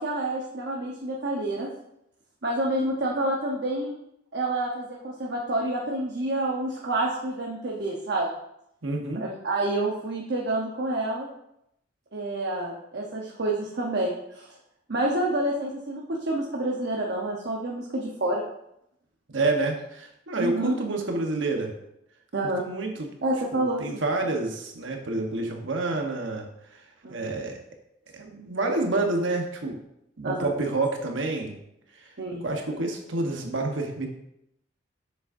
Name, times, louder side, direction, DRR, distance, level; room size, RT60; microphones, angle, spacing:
voice 1, 0.0-1.7 2.4-4.0 4.3-8.3 9.2-11.3 12.1-14.5 14.9-18.4 20.4-20.8 22.3-22.6 23.2-24.0 27.0-27.3 30.2-30.5 32.2-32.4, right 1 dB, 60° right, -2 dB, 0.9 m, -28 dB
voice 2, 8.8-9.3 19.3-21.7 22.6-23.1 23.5-26.5 27.1-27.6 28.1-29.8 30.2-31.6 32.0-32.1 32.4-34.1, right 2 dB, 90° right, 3 dB, 1.1 m, -28 dB
7.0 x 6.6 x 2.6 m, 0.80 s
head